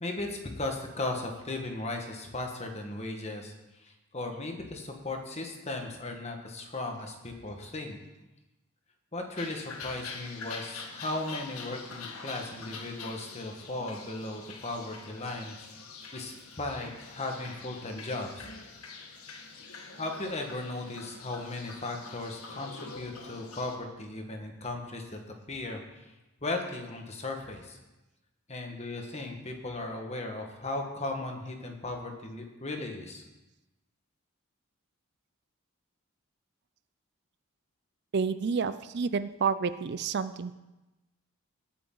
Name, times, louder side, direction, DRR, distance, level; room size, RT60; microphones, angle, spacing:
voice 1, 0.0-8.0 9.1-15.6 16.1-18.5 20.0-25.2 25.5-26.1 26.4-27.8 28.5-33.2, left 2 dB, 30° left, 3 dB, 1.6 m, -36 dB
sound 1, 9.4-23.8, left 4 dB, 85° left, 1.5 m, -45 dB
voice 2, 38.1-40.5, right 5 dB, 50° right, 13 dB, 0.4 m, -29 dB
18.5 x 8.7 x 3.9 m, 1.0 s
head